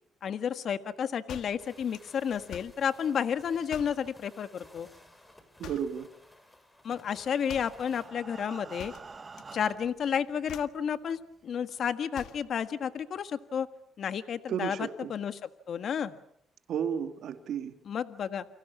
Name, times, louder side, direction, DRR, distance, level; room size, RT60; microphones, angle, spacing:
voice 1, 0.2-4.9 6.8-8.9 9.5-13.7 14.0-16.1 17.9-18.5, left 7 dB, 60° left, 10 dB, 1.6 m, -31 dB
sound 1, 1.3-2.9 3.7-4.1 5.6-6.0 7.5-7.9 8.8-9.6 9.8-10.1 10.4-10.8 12.1-12.5, left 10 dB, 80° left, 1.7 m, -47 dB
sound 2, 1.6-8.1, left 1 dB, 10° left, 6.3 m, -57 dB
voice 2, 5.6-6.1 14.5-15.1 16.7-17.7, right 8 dB, 70° right, 7 dB, 2.6 m, -33 dB
Breathing, 7.2-10.1 10.9-11.0 11.3-11.4 11.9-12.0, right 4 dB, 30° right, 1.6 m, -47 dB
29.5 x 25.5 x 7.1 m, 0.70 s
cardioid pair, 90°, 0 cm